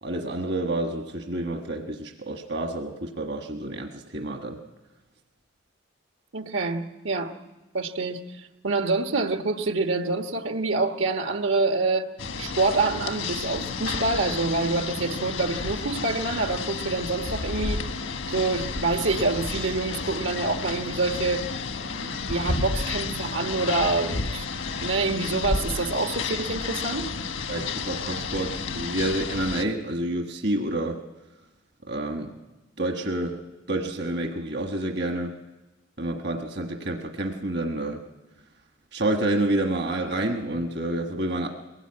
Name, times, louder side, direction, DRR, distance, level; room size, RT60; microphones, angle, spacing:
voice 1, 0.0-4.6 27.5-31.0 31.9-32.3 32.8-35.3 36.0-38.0 38.9-41.5, right 1 dB, 55° right, 4 dB, 1.3 m, -29 dB
voice 2, 6.3-7.3 7.7-12.1 12.4-17.8 18.3-21.4 22.0-24.4 24.8-27.1, right 3 dB, 80° right, 5 dB, 1.4 m, -26 dB
sound 1, 12.2-29.6, left 4 dB, 80° left, 1.3 m, -31 dB
22.0 x 17.5 x 8.7 m, 1.1 s
head